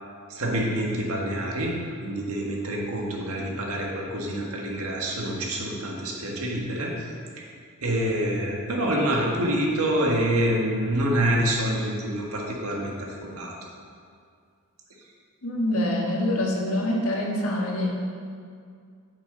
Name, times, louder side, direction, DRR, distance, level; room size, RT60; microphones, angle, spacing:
voice 1, 0.3-1.7 2.0-7.1 7.4-7.5 7.8-13.6, right 1 dB, 85° right, -1 dB, 1.6 m, -26 dB
voice 2, 15.4-18.1, left 1 dB, 75° left, -1 dB, 1.5 m, -25 dB
9.2 x 7.3 x 3.9 m, 2.2 s
head